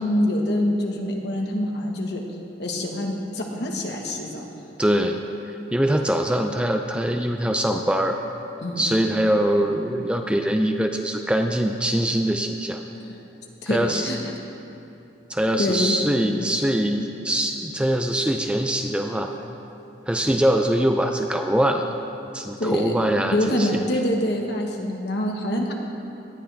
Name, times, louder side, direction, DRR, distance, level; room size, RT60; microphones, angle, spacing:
voice 1, 0.0-2.2 2.6-4.5 8.6-8.9 13.0-13.2 13.6-14.2 15.6-16.0 22.6-22.9 23.3-25.7, left 1 dB, 60° left, 0 dB, 1.5 m, -25 dB
voice 2, 4.8-5.2 5.7-8.2 8.8-12.8 13.7-14.1 15.3-19.3 20.1-21.9 22.3-23.8, right 1 dB, 5° right, 4 dB, 0.4 m, -23 dB
18.0 x 11.5 x 3.5 m, 2.8 s
head